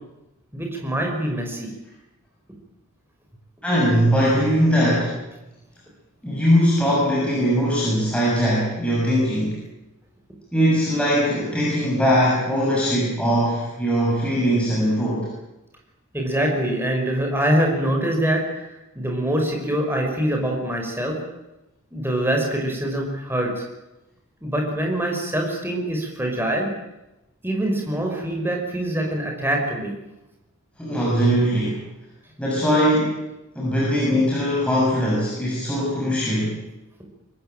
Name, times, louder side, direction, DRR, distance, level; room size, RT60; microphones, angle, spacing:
voice 1, 0.5-1.7 16.1-18.7 19.0-21.2 21.9-23.6 24.4-26.7 27.4-29.9, right 1 dB, 10° right, 1 dB, 5.5 m, -24 dB
voice 2, 3.6-5.2 6.2-9.6 10.5-15.3 30.8-31.8 32.4-33.2 33.6-36.6, equal, 5° left, -6 dB, 7.1 m, -20 dB
23.5 x 20.0 x 9.1 m, 0.96 s
head